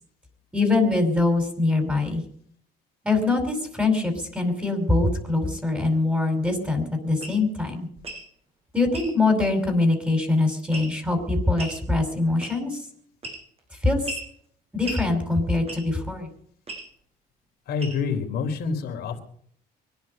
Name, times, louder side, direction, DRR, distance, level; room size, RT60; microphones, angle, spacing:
voice 1, 0.5-2.2 3.0-7.9 8.7-12.8 13.8-14.0 14.7-16.3, left 3 dB, 10° right, 4 dB, 5.7 m, -23 dB
sound 1, 7.2-7.4 8.0-8.3 8.9-9.1 10.7-11.1 11.6-11.8 12.4-12.8 13.2-13.6 14.1-14.3 14.9-15.1 15.7-16.0 16.7-16.9 17.8-18.1, right 1 dB, 35° right, 6.8 m, -36 dB
voice 2, 17.7-19.2, left 5 dB, 70° left, 4 dB, 3.5 m, -27 dB
24.5 x 10.5 x 5.5 m, 0.63 s
cardioid pair, 110°, 17 cm